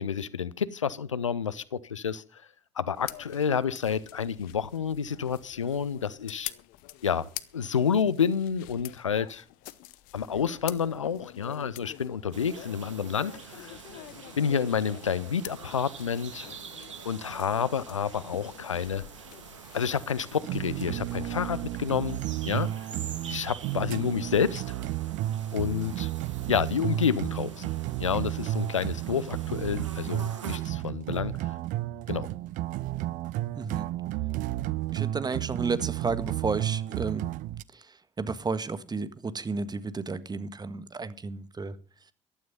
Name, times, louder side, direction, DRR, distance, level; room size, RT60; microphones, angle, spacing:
voice 1, 0.0-2.4 2.8-6.5 7.0-9.4 10.1-13.8 14.4-16.5 17.0-19.0 19.7-22.2 22.5-22.7 23.3-24.7 25.5-26.1 26.5-27.7 28.0-31.5 32.1-32.3, left 7 dB, 85° left, 0.6 m, -29 dB
sound 1, 2.9-21.4, left 17 dB, 65° left, 0.9 m, -46 dB
sound 2, 12.3-30.6, right 6 dB, 80° right, 1.5 m, -46 dB
sound 3, 20.4-37.6, right 15 dB, 60° right, 0.7 m, -32 dB
voice 2, 33.6-33.9 34.9-37.3 38.2-41.7, right 4 dB, 25° right, 1.7 m, -32 dB
14.5 x 12.5 x 5.4 m
figure-of-eight pair, 50°, 16 cm